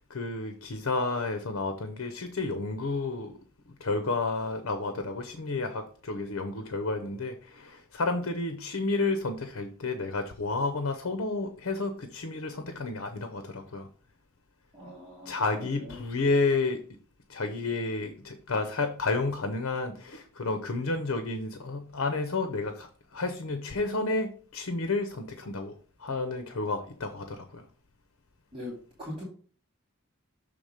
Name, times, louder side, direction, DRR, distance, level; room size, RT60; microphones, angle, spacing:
voice 1, 0.0-3.3 3.8-13.9 15.2-16.8 17.3-27.7, left 3 dB, 70° left, 8 dB, 0.7 m, -31 dB
voice 2, 14.7-16.0 16.2-16.3 28.5-29.2, left 1 dB, 25° right, -8 dB, 2.3 m, -42 dB
7.0 x 3.5 x 5.0 m, 0.43 s
head